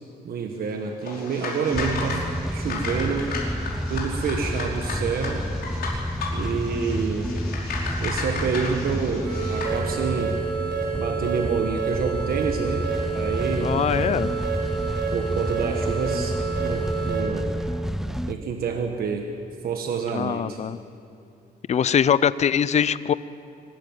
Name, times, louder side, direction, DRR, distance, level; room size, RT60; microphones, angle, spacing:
voice 1, 0.2-2.2 2.5-3.4 3.9-5.5 6.3-7.3 8.0-10.4 11.0-13.7 15.1-17.5 18.3-19.3 19.6-20.6, right 5 dB, 60° right, 4 dB, 1.4 m, -28 dB
sound 1, 1.0-9.8, left 3 dB, 70° left, 4.8 m, -34 dB
sound 2, 1.7-18.3, equal, ahead, 0.5 m, -30 dB
sound 3, 9.2-17.2, right 5 dB, 80° right, 6.3 m, -29 dB
voice 2, 13.6-14.3 20.1-20.8 21.7-23.1, left 8 dB, 40° left, 17 dB, 0.5 m, -22 dB
24.0 x 13.0 x 9.3 m, 2.7 s
cardioid pair, 145°, 17 cm